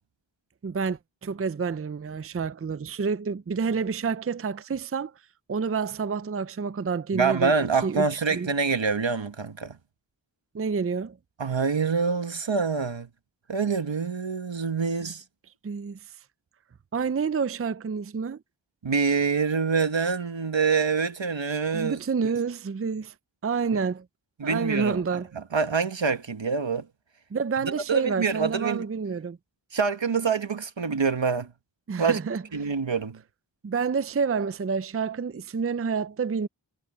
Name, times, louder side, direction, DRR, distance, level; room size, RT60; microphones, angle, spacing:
voice 1, 0.6-5.1 5.5-7.5 7.8-8.5 10.5-11.2 15.6-16.1 16.9-18.4 21.7-23.1 23.4-24.1 24.4-25.3 27.3-29.4 31.9-32.4 33.6-36.5, right 5 dB, 30° right, 0.5 m, -28 dB
voice 2, 7.1-9.8 11.4-13.1 13.5-15.2 18.8-22.0 24.4-25.0 25.3-26.8 27.6-28.8 29.7-31.5 32.0-32.2 32.5-33.2, right 5 dB, 80° right, 1.5 m, -26 dB
wide cardioid pair, 60°, 44 cm